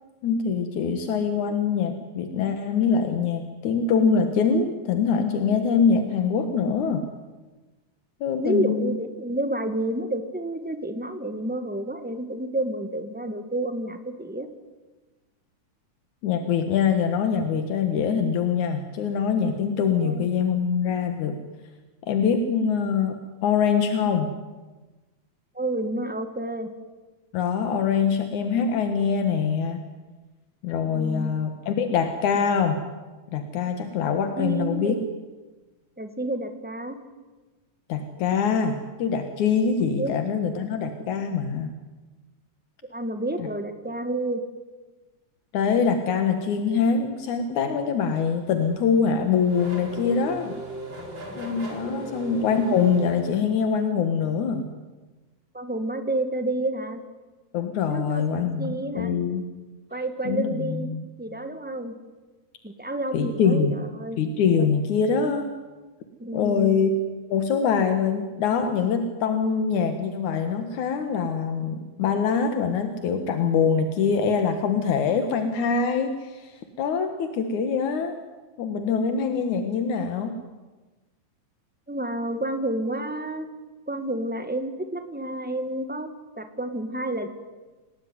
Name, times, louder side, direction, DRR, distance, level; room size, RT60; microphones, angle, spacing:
voice 1, 0.2-7.0 8.2-9.0 16.2-21.4 22.1-24.3 27.3-29.8 30.6-32.8 33.3-35.0 37.9-41.7 43.4-43.5 45.5-50.6 51.4-54.7 57.5-59.4 60.2-61.1 63.1-63.8 64.2-65.5 66.3-67.0 67.3-78.2 78.6-80.3, left 6 dB, 85° left, 7 dB, 3.0 m, -24 dB
voice 2, 8.3-14.5 20.0-20.3 25.5-26.7 30.9-31.3 34.3-34.9 36.0-37.0 40.0-40.1 42.9-44.4 51.9-52.1 55.5-57.0 57.9-59.1 59.9-60.9 61.2-61.9 62.6-64.2 66.2-66.8 81.9-83.5 83.9-86.1 86.4-87.3, right 1 dB, 5° right, 8 dB, 1.5 m, -30 dB
Race car auto racing / Accelerating revving vroom, 48.3-53.9, right 1 dB, 40° right, 4.7 m, -38 dB
29.5 x 18.5 x 9.6 m, 1.2 s
omnidirectional pair, 3.3 m